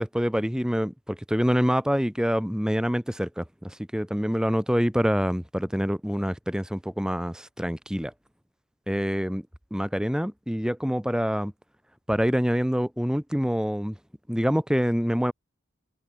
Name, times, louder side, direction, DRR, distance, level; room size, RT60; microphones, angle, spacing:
voice 1, 0.0-8.1 8.9-9.4 9.7-11.5 12.1-14.0 14.3-15.3, equal, 5° right, 1.7 m, -26 dB
head